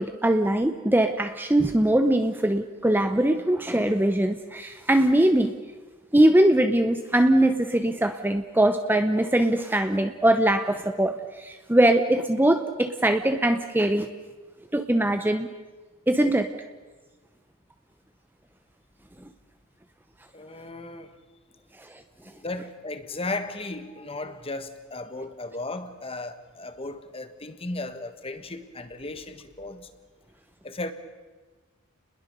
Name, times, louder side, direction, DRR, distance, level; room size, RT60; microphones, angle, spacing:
voice 1, 0.0-5.5 6.1-14.1 14.7-15.5 16.1-16.5 21.9-22.0, right 1 dB, 10° right, 0.7 m, -22 dB
voice 2, 20.3-21.1 22.2-29.9 30.6-30.9, left 2 dB, 25° left, 1.5 m, -35 dB
30.0 x 21.0 x 6.8 m
head